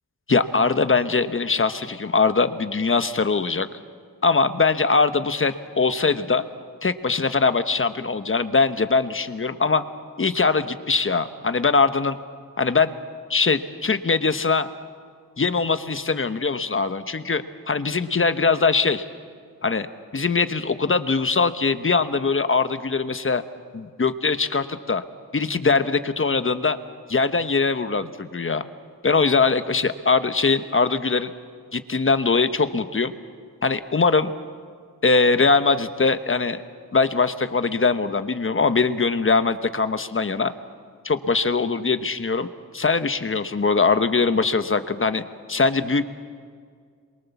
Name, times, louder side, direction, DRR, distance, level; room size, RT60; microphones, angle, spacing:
voice 1, 0.3-3.7 4.2-6.4 6.8-9.8 10.2-12.2 12.6-12.9 13.3-14.7 15.4-19.0 19.6-19.9 20.1-23.4 23.7-25.0 25.3-26.8 27.1-28.6 29.0-31.3 31.7-33.1 33.6-34.3 35.0-36.6 36.9-40.5 41.0-42.5 42.7-46.1, left 4 dB, 35° left, 10 dB, 1.1 m, -21 dB
27.0 x 23.0 x 7.2 m, 2.1 s
wide cardioid pair, 95°, 34 cm